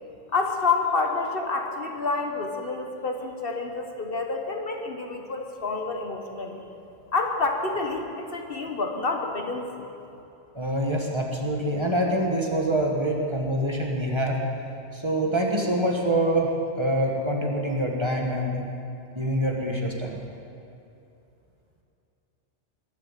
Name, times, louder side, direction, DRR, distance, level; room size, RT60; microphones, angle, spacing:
voice 1, 0.3-6.6 7.1-9.7, left 3 dB, 55° left, 3 dB, 1.3 m, -28 dB
voice 2, 10.5-14.4 14.9-18.7 19.1-20.2, right 1 dB, 25° right, -1 dB, 1.5 m, -25 dB
22.0 x 7.4 x 7.4 m, 2.8 s
omnidirectional pair, 1.2 m